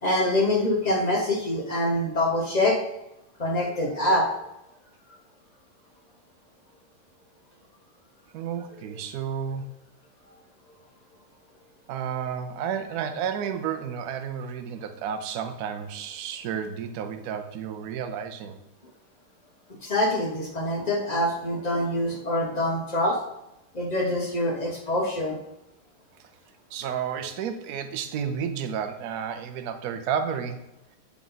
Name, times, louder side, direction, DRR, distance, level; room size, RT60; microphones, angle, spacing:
voice 1, 0.0-2.8 3.4-4.3 19.8-23.2 23.7-25.4, left 1 dB, 70° left, -2 dB, 0.4 m, -25 dB
voice 2, 8.3-9.7 11.9-18.6 26.7-30.7, right 7 dB, 70° right, 7 dB, 0.9 m, -31 dB
8.2 x 3.6 x 3.9 m, 0.87 s
omnidirectional pair, 2.3 m